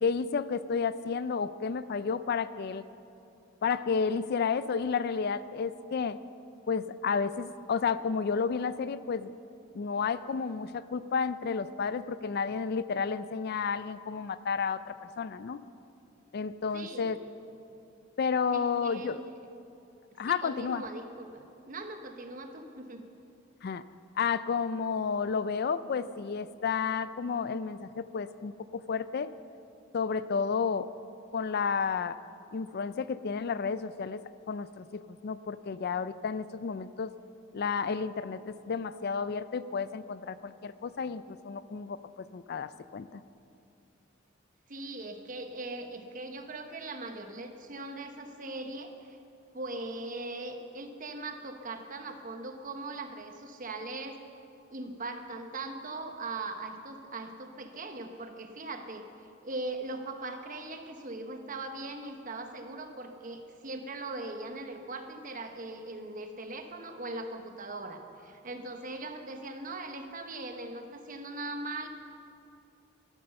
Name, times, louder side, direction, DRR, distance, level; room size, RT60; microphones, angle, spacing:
voice 1, 0.0-2.8 3.6-6.2 6.7-9.3 9.7-15.6 16.3-17.2 18.2-19.2 20.2-20.9 23.6-23.8 24.2-29.3 29.9-30.9 31.3-32.2 32.5-34.2 34.5-37.1 37.5-43.2, left 5 dB, 55° left, 15 dB, 0.4 m, -31 dB
voice 2, 16.7-17.2 18.5-19.3 20.2-23.1 44.7-49.2 49.5-54.2 54.7-59.1 59.4-71.9, right 2 dB, 45° right, 6 dB, 1.1 m, -40 dB
12.5 x 12.0 x 6.9 m, 2.6 s
head